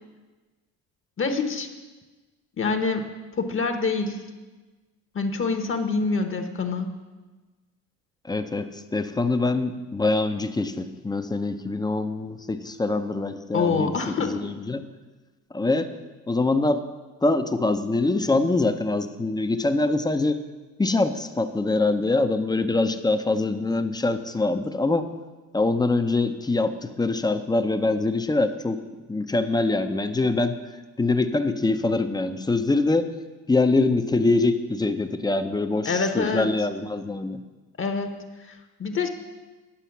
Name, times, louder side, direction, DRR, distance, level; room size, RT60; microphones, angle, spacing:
voice 1, 1.2-1.7 2.6-3.1 3.4-4.2 5.1-7.0 13.5-14.5 35.8-36.5 37.8-39.1, left 4 dB, 35° left, 6 dB, 1.0 m, -26 dB
voice 2, 8.3-14.8 15.5-15.9 16.3-16.8 17.2-20.4 20.8-25.1 25.5-28.8 29.1-30.6 31.0-33.1 33.5-37.4, left 2 dB, 10° left, 9 dB, 0.6 m, -24 dB
10.0 x 6.8 x 5.9 m, 1.2 s
cardioid pair, 100°, 36 cm